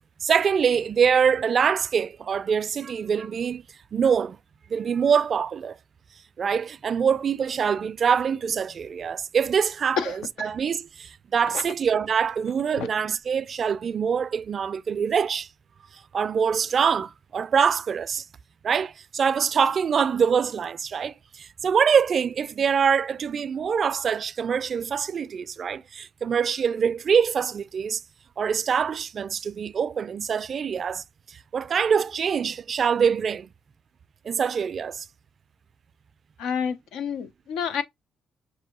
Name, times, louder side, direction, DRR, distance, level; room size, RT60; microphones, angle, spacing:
voice 1, 0.2-3.6 3.9-4.4 4.7-5.8 6.4-15.5 16.1-18.2 18.6-28.0 28.4-33.5 34.2-35.1, right 7 dB, 50° right, 0.3 m, -24 dB
voice 2, 10.0-10.5 11.5-11.6 12.8-12.9 36.4-37.8, left 7 dB, 85° left, 0.6 m, -29 dB
6.0 x 2.6 x 2.8 m
cardioid pair, 90°, 0 cm